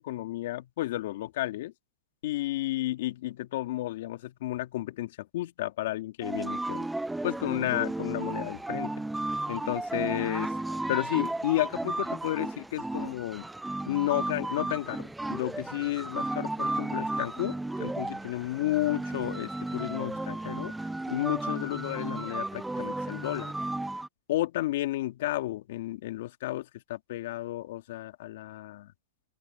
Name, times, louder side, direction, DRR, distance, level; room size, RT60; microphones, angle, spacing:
voice 1, 0.0-1.7 2.2-6.9 7.2-8.9 9.5-10.5 10.9-13.5 13.9-20.7 21.1-23.5 24.3-28.9, left 16 dB, 60° left, 2.9 m, -32 dB
sound 1, 6.2-24.1, right 2 dB, 5° right, 0.6 m, -34 dB
open air
hypercardioid pair, 135°, 0 cm